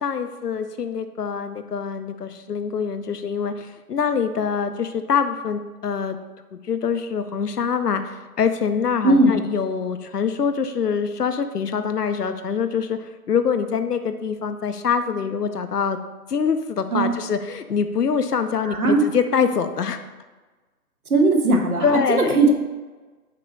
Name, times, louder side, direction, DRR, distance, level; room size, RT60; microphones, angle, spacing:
voice 1, 0.0-6.2 6.5-16.0 16.3-20.0 21.8-22.4, left 6 dB, 75° left, 9 dB, 0.7 m, -24 dB
voice 2, 18.7-19.0 21.1-22.5, right 2 dB, 65° right, 3 dB, 1.2 m, -18 dB
6.6 x 3.0 x 5.4 m, 1.3 s
figure-of-eight pair, 150°, 47 cm